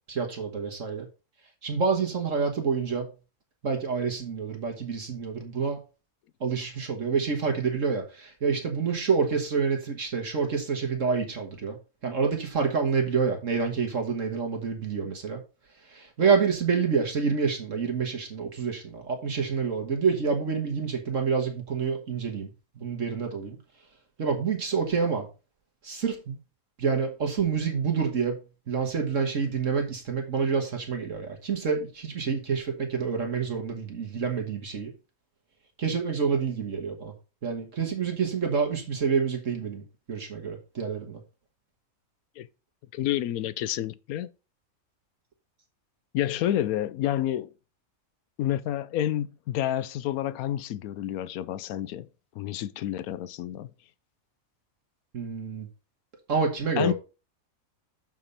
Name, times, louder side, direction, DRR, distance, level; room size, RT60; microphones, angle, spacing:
voice 1, 0.1-1.1 1.6-3.1 3.6-5.8 6.4-11.8 12.0-15.4 15.9-22.5 22.8-23.6 24.2-25.3 25.8-26.4 26.8-28.4 28.7-34.9 35.8-37.1 37.4-41.2 55.1-55.7 56.3-56.9, right 5 dB, 60° right, 1.8 m, -27 dB
voice 2, 42.9-44.3 46.1-47.5 48.4-52.1 52.4-53.7 56.8-56.9, left 12 dB, 90° left, 1.1 m, -29 dB
6.9 x 6.0 x 4.2 m
omnidirectional pair, 1.5 m